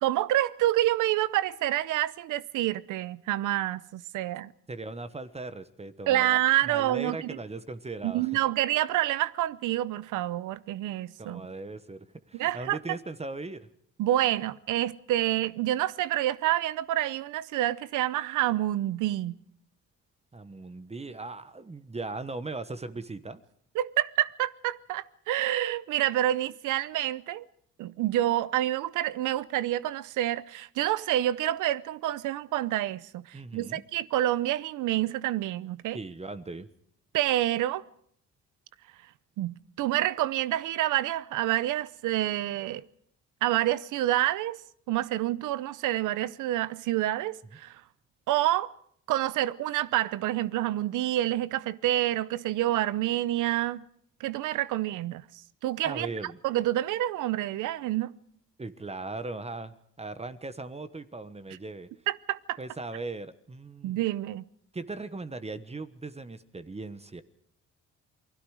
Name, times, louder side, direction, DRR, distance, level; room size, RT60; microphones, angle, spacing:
voice 1, 0.0-4.5 6.1-7.4 8.0-11.4 12.3-12.8 14.0-19.3 23.7-27.4 27.8-36.0 37.1-37.8 39.4-42.8 43.4-44.6 44.9-47.8 48.3-48.7 49.1-53.8 54.2-55.2 55.6-56.1 56.4-58.1 62.1-62.6 63.8-64.4, right 14 dB, 90° right, 0.8 m, -28 dB
voice 2, 4.7-8.3 11.2-13.7 20.3-23.4 33.3-33.8 35.9-36.7 55.8-56.4 58.6-61.9 62.6-64.0 64.7-67.2, right 3 dB, 20° right, 1.2 m, -38 dB
28.5 x 20.5 x 4.9 m
cardioid pair, 90°, 30 cm